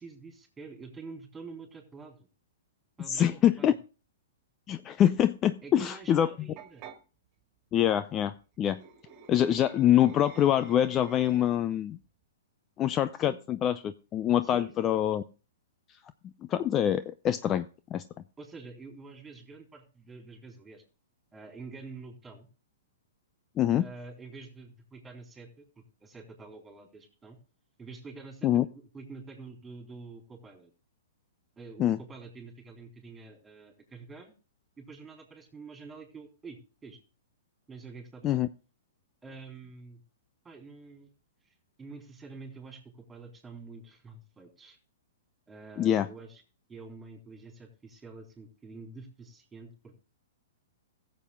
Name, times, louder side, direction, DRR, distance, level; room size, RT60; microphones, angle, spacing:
voice 1, 0.0-2.2 3.0-3.8 5.6-6.8 13.2-13.4 14.4-14.7 18.4-20.8 21.3-22.5 23.8-25.6 26.0-27.4 27.8-30.7 31.6-34.3 34.8-37.0 37.7-38.4 39.2-40.0 40.4-41.1 41.5-44.8 45.5-46.4 46.7-50.0, right 4 dB, 10° right, 2 dB, 3.6 m, -47 dB
voice 2, 3.1-3.7 4.7-6.3 7.7-8.8 9.3-12.0 12.8-15.2 16.5-17.7 17.9-18.0 23.6-23.8 28.4-28.6 31.8-32.0 38.2-38.5 45.8-46.1, left 11 dB, 25° left, 13 dB, 0.4 m, -25 dB
sound 1, 6.6-7.0 8.7-11.7, right 6 dB, 35° right, 2.0 m, -49 dB
15.5 x 7.4 x 3.6 m, 0.34 s
hypercardioid pair, 130°, 0 cm